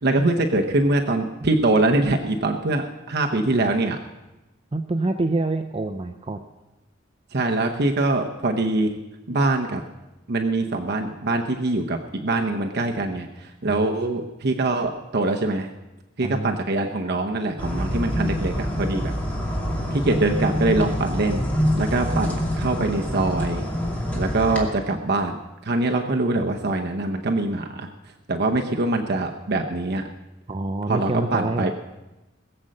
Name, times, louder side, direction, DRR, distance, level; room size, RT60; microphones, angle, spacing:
voice 1, 0.0-4.0 7.3-9.0 9.3-9.8 10.3-15.7 16.2-19.1 19.9-21.5 21.7-23.7 24.1-27.9 28.3-30.0 30.9-31.7, right 2 dB, 55° right, 3 dB, 0.9 m, -23 dB
voice 2, 4.7-6.4 13.6-13.8 16.2-16.5 30.5-31.7, right 2 dB, 30° right, 7 dB, 0.6 m, -26 dB
sound 1, 17.6-24.6, equal, 10° left, 2.4 m, -26 dB
20.5 x 7.6 x 6.5 m, 1.0 s
head